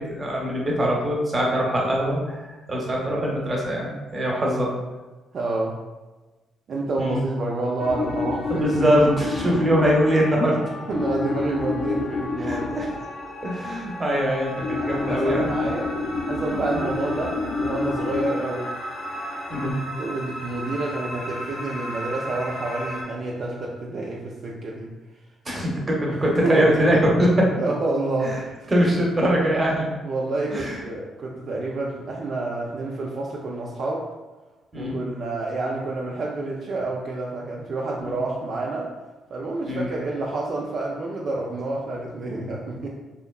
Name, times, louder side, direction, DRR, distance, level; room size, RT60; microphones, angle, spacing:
voice 1, 0.0-2.4 2.7-4.7 7.0-7.2 8.5-10.6 12.4-12.9 13.4-15.5 19.5-19.7 25.5-27.5 28.7-29.8 30.5-30.8 34.7-35.0 38.0-38.2 39.7-39.9, equal, 25° right, -2 dB, 0.7 m, -22 dB
voice 2, 5.3-5.8 6.7-8.8 9.4-9.8 10.9-12.8 14.8-16.0 16.3-18.8 19.6-24.9 26.1-26.8 27.6-28.7 30.0-34.1 34.7-38.9 39.3-42.9, right 2 dB, 55° right, -3 dB, 0.3 m, -29 dB
sound 1, 7.8-19.7, left 3 dB, 60° left, 0.5 m, -29 dB
sound 2, 12.7-23.0, right 1 dB, 85° left, 0.8 m, -36 dB
2.7 x 2.2 x 2.3 m, 1.2 s
cardioid pair, 90°, 0 cm